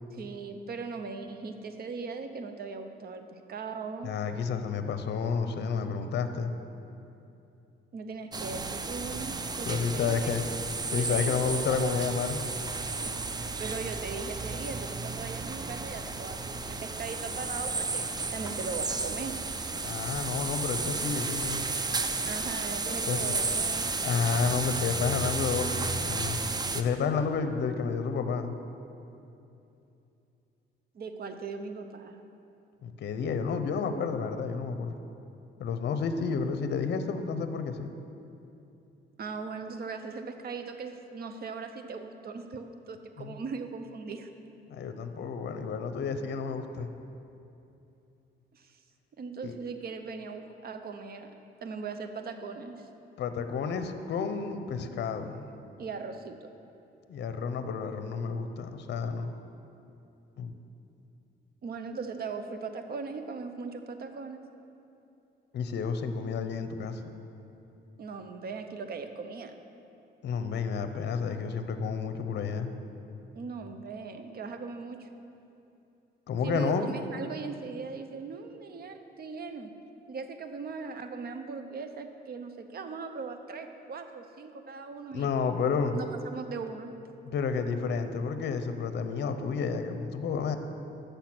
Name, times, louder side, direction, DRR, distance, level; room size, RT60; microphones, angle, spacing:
voice 1, 0.1-4.1 7.9-10.4 11.0-12.4 13.0-18.0 18.3-19.3 22.2-23.9 30.9-32.2 39.2-44.3 48.5-48.8 49.2-51.3 51.6-52.9 55.8-56.5 61.6-64.4 68.0-69.5 73.3-75.1 76.4-79.7 80.1-85.3 85.9-86.9, right 4 dB, 50° right, 8 dB, 0.7 m, -39 dB
voice 2, 4.0-6.5 9.7-10.4 10.9-12.4 19.8-21.6 23.1-23.4 24.0-26.4 26.7-28.6 32.8-35.0 35.6-37.9 43.2-43.4 44.7-46.9 49.4-49.5 53.2-55.5 57.1-59.3 60.4-60.5 65.5-67.1 70.2-72.7 76.3-77.0 85.1-86.0 87.3-90.6, left 5 dB, 60° left, 9 dB, 0.6 m, -30 dB
sound 1, 8.3-26.8, right 3 dB, 20° right, 0.4 m, -33 dB
7.6 x 6.7 x 5.9 m, 2.8 s
cardioid pair, 90°, 20 cm